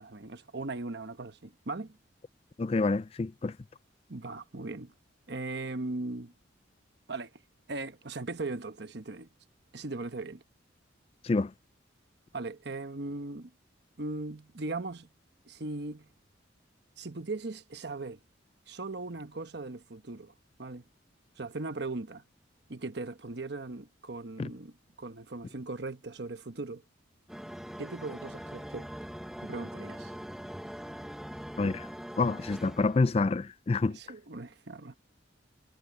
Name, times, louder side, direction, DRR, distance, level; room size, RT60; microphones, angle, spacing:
voice 1, 0.0-2.0 4.1-4.9 5.3-6.3 7.1-7.3 7.7-9.3 9.7-10.4 12.3-13.5 14.0-15.1 15.4-16.1 17.0-18.2 18.7-20.3 20.6-20.8 21.4-22.2 22.7-26.8 27.8-28.9 29.4-30.1 33.9-34.9, right 3 dB, 60° right, 1.1 m, -38 dB
voice 2, 2.6-3.6 11.2-11.5 24.4-24.5 31.6-31.9 32.2-34.0, left 3 dB, 30° left, 0.3 m, -27 dB
sound 1, 27.3-33.3, equal, ahead, 1.1 m, -42 dB
head